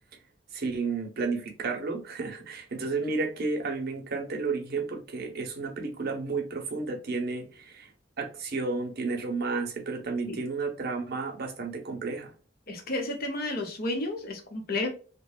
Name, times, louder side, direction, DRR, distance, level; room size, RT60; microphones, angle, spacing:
voice 1, 0.5-7.9 8.2-12.3, right 4 dB, 55° right, 0.7 m, -32 dB
voice 2, 12.7-14.9, left 2 dB, 55° left, 0.8 m, -31 dB
2.8 x 2.2 x 2.3 m
head